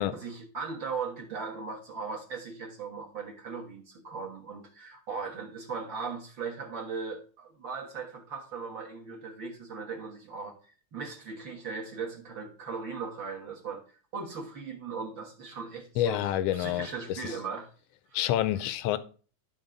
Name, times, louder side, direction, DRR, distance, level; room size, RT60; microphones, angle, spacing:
voice 1, 0.0-13.8 14.1-17.7 18.1-18.2, right 5 dB, 50° right, 1.7 m, -38 dB
voice 2, 16.0-16.9 18.1-19.0, left 13 dB, 80° left, 1.5 m, -27 dB
12.0 x 4.1 x 5.0 m
omnidirectional pair, 3.4 m